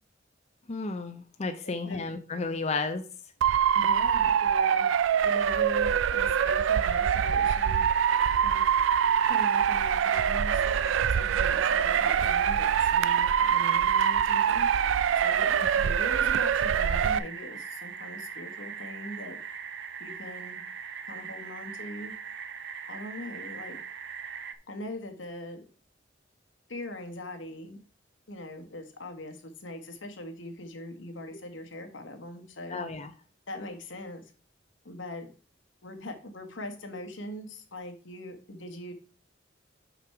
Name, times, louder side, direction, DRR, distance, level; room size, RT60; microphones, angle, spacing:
voice 1, 0.7-3.0 15.5-15.7 32.7-33.1, left 3 dB, 35° left, 7 dB, 0.5 m, -33 dB
voice 2, 1.6-2.0 3.7-4.9 5.2-7.9 8.4-8.6 9.3-10.6 11.1-14.7 15.1-19.4 20.0-20.6 21.0-22.1 22.9-23.8 24.7-25.6 26.7-27.8 28.3-32.8 33.5-34.3 34.8-35.3 35.8-38.9, left 1 dB, 85° left, 6 dB, 1.4 m, -41 dB
Motor vehicle (road) / Siren, 3.4-17.2, right 8 dB, 85° right, 0.4 m, -24 dB
sound 1, 6.8-24.5, right 6 dB, 65° right, 0.7 m, -41 dB
5.9 x 5.3 x 4.6 m, 0.39 s
head